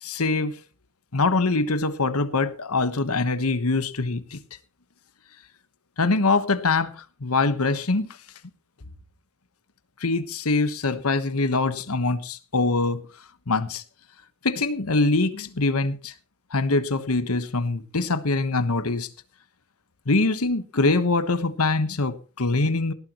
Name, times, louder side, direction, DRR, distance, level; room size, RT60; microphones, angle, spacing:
voice 1, 0.0-0.6 1.1-4.4 6.0-8.1 10.0-13.0 13.5-13.8 14.4-16.1 16.5-19.1 20.1-22.9, left 3 dB, 90° left, 1.2 m, -23 dB
18.5 x 12.0 x 3.0 m
head